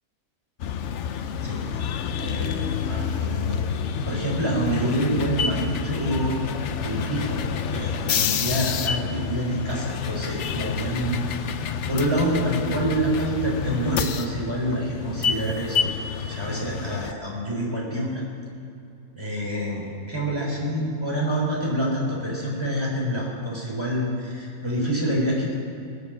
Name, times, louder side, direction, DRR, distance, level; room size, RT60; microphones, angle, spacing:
sound 1, 0.6-17.1, left 7 dB, 60° left, 0.9 m, -28 dB
voice 1, 1.4-1.8 2.2-3.6 4.1-6.3 6.8-7.4 7.7-15.9 16.3-18.2 19.1-25.5, right 1 dB, 15° right, -4 dB, 3.9 m, -27 dB
20.5 x 8.2 x 7.2 m, 2.6 s
omnidirectional pair, 1.6 m